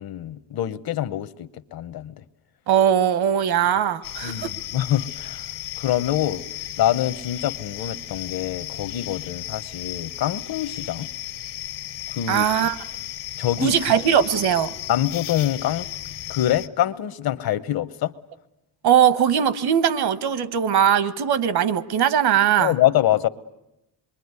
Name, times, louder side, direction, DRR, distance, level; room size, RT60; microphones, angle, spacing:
voice 1, 0.0-2.1 4.2-5.4 5.8-6.4 6.8-11.1 12.1-12.7 13.4-13.7 14.9-15.9 16.3-18.1 22.6-23.3, left 12 dB, 55° left, 0.9 m, -25 dB
voice 2, 2.7-4.5 12.3-12.8 13.6-14.7 18.8-22.7, right 9 dB, 60° right, 1.2 m, -20 dB
sound 1, 4.0-16.7, left 13 dB, 80° left, 1.5 m, -35 dB
27.0 x 22.5 x 9.6 m
cardioid pair, 160°, 43 cm